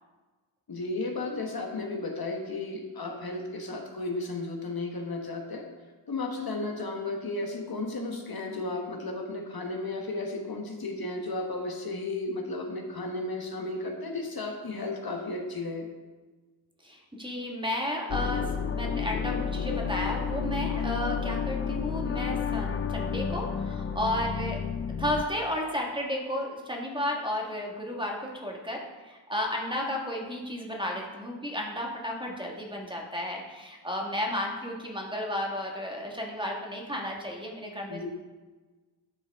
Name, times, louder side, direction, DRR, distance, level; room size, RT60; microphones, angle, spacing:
voice 1, 0.7-5.6 6.1-15.9 37.9-38.1, left 2 dB, 45° left, 2 dB, 1.3 m, -34 dB
voice 2, 16.8-24.6 25.0-38.1, left 1 dB, 10° right, -1 dB, 1.5 m, -33 dB
sound 1, 18.1-25.2, left 7 dB, 30° left, 0.4 m, -31 dB
9.8 x 5.5 x 3.5 m, 1.3 s
cardioid pair, 65°, 49 cm